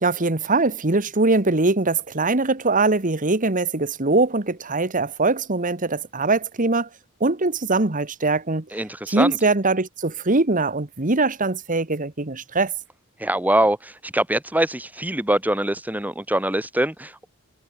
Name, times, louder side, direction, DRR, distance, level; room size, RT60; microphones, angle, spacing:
voice 1, 0.0-6.9 7.2-8.7 9.1-12.7, right 3 dB, 35° right, 1.6 m, -22 dB
voice 2, 8.7-9.4 13.2-17.3, right 1 dB, 5° right, 2.1 m, -23 dB
head